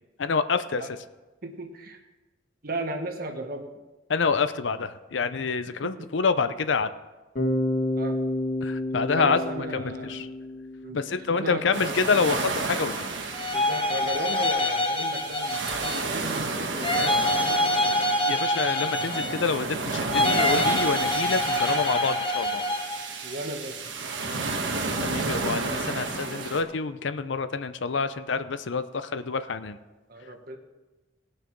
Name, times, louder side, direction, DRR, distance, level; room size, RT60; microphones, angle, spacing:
voice 1, 0.2-0.8 4.1-6.9 8.6-9.4 9.7-10.3 10.9-13.1 18.3-22.6 25.0-29.8, left 5 dB, 70° left, 12 dB, 0.6 m, -27 dB
voice 2, 1.4-2.0 2.6-3.7 5.8-6.1 8.0-8.2 9.1-10.3 10.8-11.0 11.3-12.1 13.5-18.0 23.2-23.8 24.3-24.6 26.1-26.7 30.1-30.6, right 2 dB, 50° right, 5 dB, 1.3 m, -36 dB
Bass guitar, 7.4-11.4, left 1 dB, 45° left, 1.5 m, -29 dB
sound 1, 11.7-26.6, right 3 dB, 70° right, 1.4 m, -32 dB
sound 2, 13.3-16.2 16.8-19.6 20.1-23.1, left 1 dB, 30° left, 0.9 m, -26 dB
18.5 x 6.6 x 4.6 m, 1.2 s
head